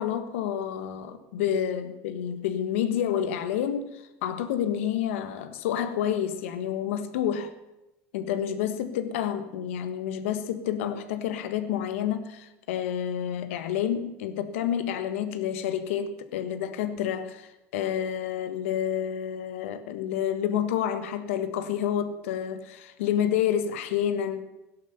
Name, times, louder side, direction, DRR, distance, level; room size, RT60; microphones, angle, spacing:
voice 1, 0.0-7.5 8.1-24.4, left 9 dB, 85° left, 1.5 m, -29 dB
17.0 x 11.5 x 6.9 m
hypercardioid pair, 85°, 7 cm